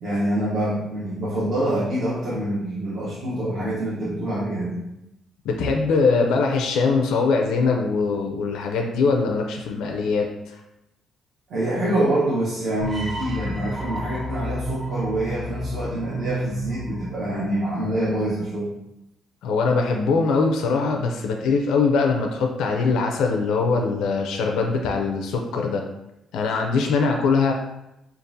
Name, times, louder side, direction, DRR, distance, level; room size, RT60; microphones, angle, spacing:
voice 1, 0.0-4.8 11.5-18.7, right 1 dB, 55° right, -8 dB, 0.9 m, -25 dB
voice 2, 5.4-10.6 19.4-25.8 26.3-27.5, left 4 dB, 90° left, 2 dB, 0.4 m, -22 dB
sound 1, 12.8-17.9, right 1 dB, 20° right, 0.7 m, -31 dB
5.1 x 2.4 x 2.6 m, 0.89 s
cardioid pair, 165°, 0 cm